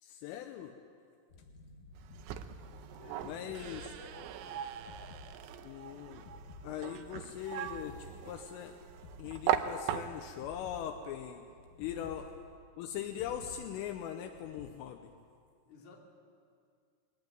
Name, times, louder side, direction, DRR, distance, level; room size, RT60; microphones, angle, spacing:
voice 1, 0.0-0.8 3.2-3.8 5.6-6.3 6.6-8.0 8.3-8.8 9.2-11.5 11.8-12.3 12.8-15.1, left 10 dB, 80° left, 6 dB, 3.4 m, -40 dB
sound 1, 1.3-14.7, left 2 dB, 65° left, 2.4 m, -53 dB
sound 2, 1.9-10.5, right 11 dB, 80° right, 3.0 m, -39 dB
voice 2, 3.0-4.7 11.8-12.1 15.7-16.0, left 4 dB, 40° left, -1 dB, 3.8 m, -54 dB
22.0 x 17.5 x 9.2 m, 2.2 s
omnidirectional pair, 5.9 m